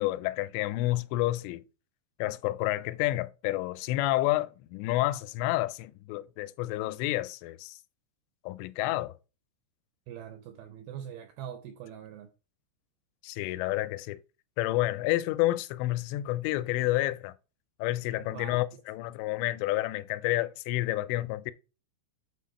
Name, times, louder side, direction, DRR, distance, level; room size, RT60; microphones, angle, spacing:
voice 1, 0.0-1.6 2.2-7.8 8.4-9.1 13.2-14.2 14.6-17.3 17.8-21.5, left 17 dB, 90° left, 2.8 m, -29 dB
voice 2, 10.1-12.3 18.3-18.6, right 9 dB, 85° right, 2.1 m, -43 dB
8.5 x 3.8 x 4.2 m
omnidirectional pair, 5.0 m